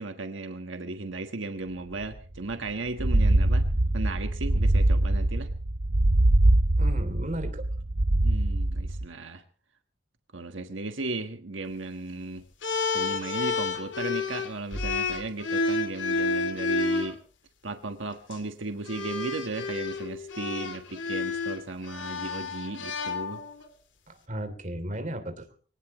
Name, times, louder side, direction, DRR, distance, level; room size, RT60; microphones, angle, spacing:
voice 1, 0.0-3.7 3.9-5.5 8.2-9.4 10.3-12.4 12.9-17.2 17.6-23.4, right 2 dB, 85° right, 7 dB, 1.4 m, -35 dB
sound 1, 2.0-2.1 2.4-2.5 2.9-9.1, right 1 dB, 65° right, 1.1 m, -23 dB
voice 2, 6.8-7.6 24.1-25.4, right 1 dB, 40° right, 7 dB, 3.0 m, -35 dB
sound 2, 12.6-17.1 18.1-18.4 18.9-23.7, left 3 dB, 75° left, 2.6 m, -30 dB
23.5 x 18.0 x 3.1 m, 0.41 s
head